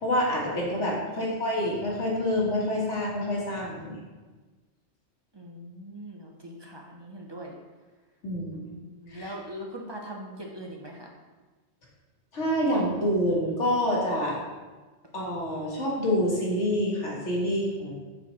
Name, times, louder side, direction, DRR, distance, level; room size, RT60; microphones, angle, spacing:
voice 1, 0.0-4.0 8.2-8.7 9.1-9.3 12.3-14.4 15.1-17.9, equal, 85° left, -4 dB, 1.9 m, -27 dB
voice 2, 1.1-1.4 5.3-7.5 8.5-11.1, equal, 30° right, -1 dB, 0.6 m, -41 dB
6.8 x 5.5 x 3.1 m, 1.3 s
omnidirectional pair, 1.2 m